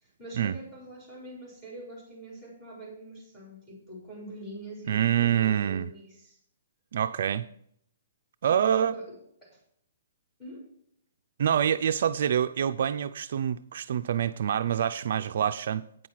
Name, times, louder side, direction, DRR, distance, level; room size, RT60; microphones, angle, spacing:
voice 1, 0.0-6.4 8.5-9.6 10.4-10.7, right 1 dB, 10° left, 3.9 m, -44 dB
voice 2, 4.9-5.9 6.9-7.5 8.4-9.0 11.4-16.1, right 9 dB, 55° right, 0.4 m, -26 dB
9.1 x 6.3 x 5.8 m
hypercardioid pair, 165°, 0 cm